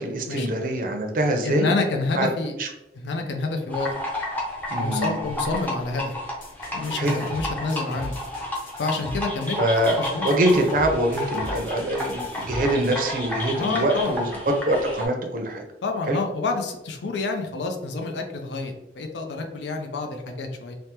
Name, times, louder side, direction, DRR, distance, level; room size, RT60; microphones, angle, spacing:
voice 1, 0.0-1.7 2.1-2.3 2.6-2.7 4.7-5.2 7.0-7.2 9.6-10.0 10.2-15.6 16.1-16.2, right 1 dB, 50° right, 3 dB, 0.5 m, -24 dB
voice 2, 1.4-2.5 2.9-3.9 4.7-6.1 6.7-8.2 8.8-9.6 10.0-10.3 13.6-14.2 15.8-20.7, left 3 dB, 80° left, 3 dB, 0.4 m, -28 dB
sound 1, 3.7-15.1, left 1 dB, 10° left, 0.5 m, -31 dB
sound 2, 6.4-13.0, left 1 dB, 50° left, 0.8 m, -39 dB
3.3 x 2.0 x 2.8 m, 0.95 s
head